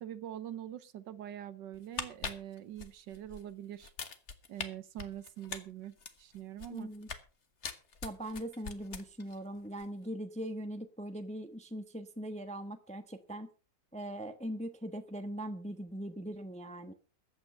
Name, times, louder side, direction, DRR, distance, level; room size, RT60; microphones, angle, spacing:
voice 1, 0.0-3.9 4.5-6.9, right 11 dB, 70° right, 15 dB, 1.4 m, -44 dB
sound 1, 1.7-3.4 3.8-4.7 5.0-7.3 7.6-9.4 9.6-9.8, left 5 dB, 40° left, 1.5 m, -42 dB
voice 2, 6.7-7.1 8.0-13.5 13.9-16.9, right 1 dB, 5° left, 8 dB, 0.8 m, -41 dB
14.5 x 8.8 x 5.5 m, 0.36 s
omnidirectional pair, 2.1 m